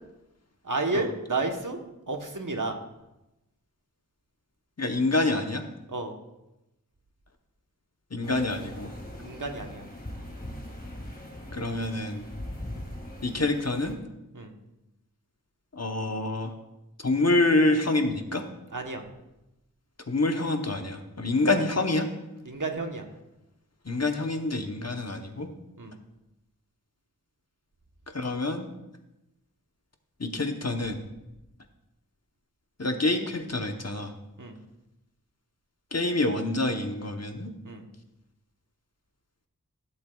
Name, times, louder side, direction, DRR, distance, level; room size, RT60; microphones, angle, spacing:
voice 1, 0.6-1.8 2.1-2.8 5.9-6.1 9.2-9.9 14.3-14.5 18.7-19.0 21.3-21.4 22.4-23.0 25.8-25.9 34.4-34.6 37.6-37.8, right 3 dB, 60° right, 3 dB, 1.2 m, -31 dB
voice 2, 4.8-5.6 8.1-8.9 11.5-12.3 13.2-14.0 15.7-16.5 17.0-18.4 20.1-22.1 23.8-25.5 28.1-28.7 30.2-31.0 32.8-34.1 35.9-37.5, left 2 dB, 45° left, 5 dB, 1.0 m, -27 dB
sound 1, 8.2-13.9, left 1 dB, 25° left, 2.1 m, -41 dB
15.5 x 7.6 x 2.4 m, 0.94 s
wide cardioid pair, 40°, 35 cm